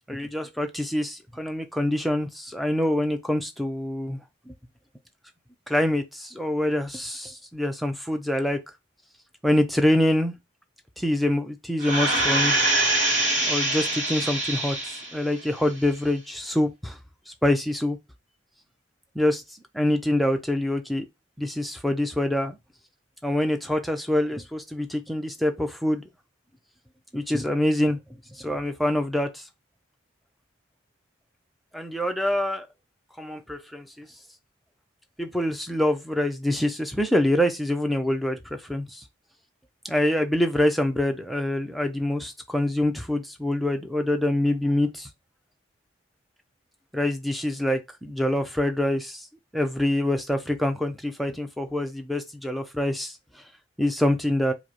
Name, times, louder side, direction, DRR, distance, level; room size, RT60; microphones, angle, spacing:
voice 1, 0.1-4.2 4.5-4.6 5.7-8.6 9.4-10.4 11.0-12.6 13.4-17.0 17.4-18.0 19.2-19.4 19.7-21.1 21.4-22.6 23.2-26.0 27.1-28.0 28.3-29.5 31.7-32.7 33.2-34.1 35.2-39.0 39.8-45.1 46.9-49.3 49.5-53.2 53.8-54.5, left 1 dB, ahead, 0.4 m, -25 dB
sound 1, 11.8-15.2 15.7-15.8, right 2 dB, 40° right, 1.1 m, -24 dB
4.9 x 2.0 x 2.9 m
head